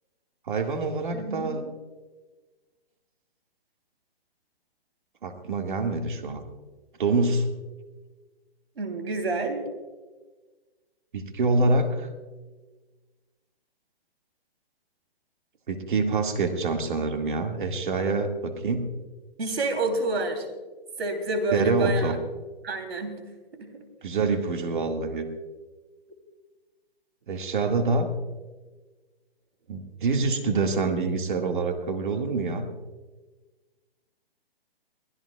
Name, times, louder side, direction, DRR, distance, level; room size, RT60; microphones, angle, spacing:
voice 1, 0.5-1.6 5.2-6.4 7.0-7.5 11.1-12.1 15.7-18.9 21.5-22.2 24.0-25.3 27.3-28.1 29.7-32.7, right 3 dB, 50° right, 4 dB, 2.0 m, -26 dB
voice 2, 1.1-1.6 8.8-9.6 19.4-20.5 21.0-22.1 22.6-23.2 23.6-23.8, right 2 dB, 85° right, 6 dB, 3.3 m, -28 dB
23.5 x 17.0 x 2.4 m, 1.3 s
hypercardioid pair, 175°, 31 cm